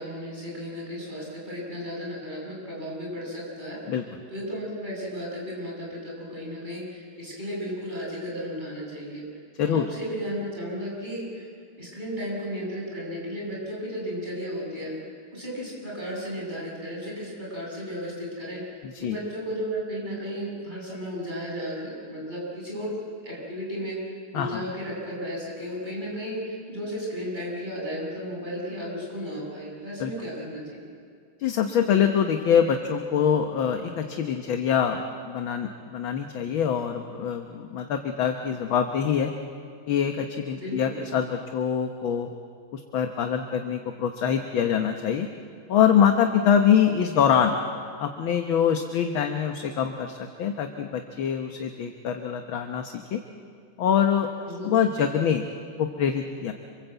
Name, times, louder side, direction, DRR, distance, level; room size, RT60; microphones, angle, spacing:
voice 1, 0.0-4.0 4.3-9.2 9.6-11.5 11.8-14.9 15.3-23.0 23.2-30.8 40.5-41.0 54.5-54.7, equal, 20° right, -4 dB, 7.5 m, -34 dB
voice 2, 31.4-39.3 39.9-42.3 42.7-45.3 45.7-47.6 48.0-53.2 53.8-54.3 54.6-55.4 55.8-56.5, left 8 dB, 70° left, 5 dB, 1.9 m, -24 dB
27.0 x 26.5 x 8.2 m, 2.2 s
omnidirectional pair, 2.4 m